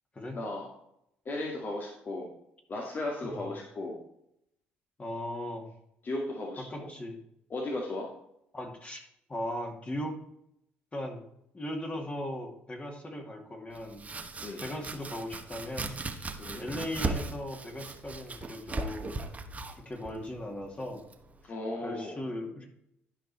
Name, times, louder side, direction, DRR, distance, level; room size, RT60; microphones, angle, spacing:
voice 1, 0.3-0.7 1.3-2.3 2.7-4.0 6.0-6.9 7.5-8.1 14.4-14.6 16.4-16.6 21.5-22.2, left 2 dB, 45° left, -1 dB, 2.1 m, -35 dB
voice 2, 5.0-5.7 6.7-7.2 8.5-9.0 9.3-10.2 10.9-11.2 11.5-14.0 14.6-16.3 16.6-19.1 19.8-21.0 21.4-21.6 21.8-22.7, left 1 dB, 25° left, 2 dB, 2.5 m, -38 dB
Domestic sounds home sounds, 13.7-21.5, right 3 dB, 30° right, 1.2 m, -38 dB
11.5 x 5.2 x 4.3 m, 0.77 s
supercardioid pair, 70°, 5 cm